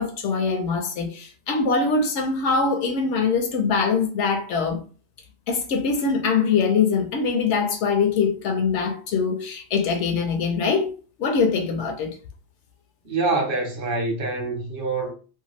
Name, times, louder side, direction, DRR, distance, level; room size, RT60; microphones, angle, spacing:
voice 1, 0.0-4.8 5.5-10.9 11.2-12.2, left 5 dB, 70° left, 0.9 m, -23 dB
voice 2, 13.0-15.1, right 3 dB, 50° right, 0.9 m, -25 dB
2.8 x 2.2 x 3.0 m
omnidirectional pair, 1.3 m